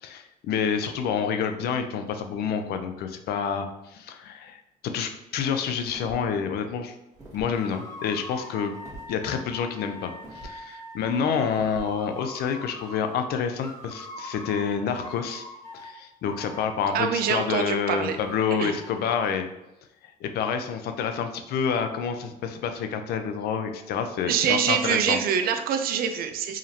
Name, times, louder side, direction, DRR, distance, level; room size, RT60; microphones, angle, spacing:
voice 1, 0.0-6.9 7.3-8.7 9.1-15.4 15.7-19.5 20.0-25.2, left 7 dB, 70° left, 7 dB, 0.5 m, -28 dB
sound 1, 5.8-6.4 7.1-7.5 8.8-9.1 10.2-10.6 11.5-11.9, right 2 dB, 20° right, 1.2 m, -44 dB
sound 2, 7.5-13.2 13.6-16.0 16.2-19.2, left 1 dB, 20° left, 1.1 m, -42 dB
voice 2, 16.9-18.2 18.6-18.7 24.3-26.6, right 7 dB, 60° right, 7 dB, 0.5 m, -25 dB
4.9 x 2.8 x 2.8 m, 0.92 s
cardioid pair, 110°, 17 cm